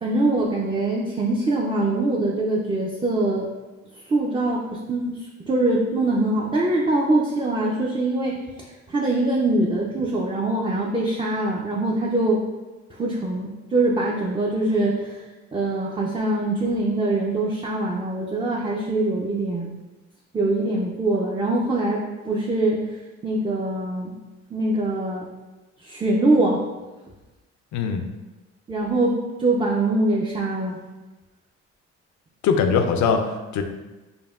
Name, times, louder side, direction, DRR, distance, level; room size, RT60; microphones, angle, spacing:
voice 1, 0.0-3.5 4.1-8.4 8.9-12.4 13.0-15.2 15.5-19.7 20.3-22.8 23.2-24.1 24.5-25.3 25.8-26.6 28.7-30.8, right 2 dB, 20° right, -3 dB, 0.4 m, -23 dB
voice 2, 27.7-28.0 32.4-33.6, left 6 dB, 70° left, 5 dB, 0.5 m, -21 dB
5.4 x 2.2 x 2.3 m, 1.1 s
cardioid pair, 90°, 30 cm